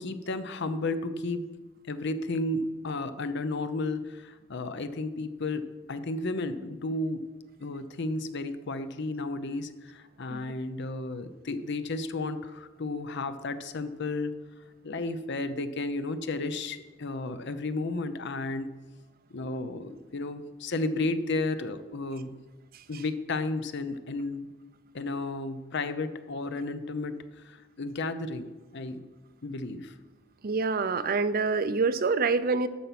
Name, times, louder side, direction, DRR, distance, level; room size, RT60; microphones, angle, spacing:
voice 1, 0.0-1.5 1.9-7.2 7.6-14.3 14.8-18.7 19.3-22.3 22.9-24.5 24.9-27.1 27.4-29.0 29.4-29.9, left 2 dB, 60° left, 11 dB, 0.7 m, -33 dB
voice 2, 30.4-32.7, right 4 dB, 50° right, 13 dB, 0.6 m, -27 dB
11.5 x 6.9 x 5.9 m, 1.2 s
head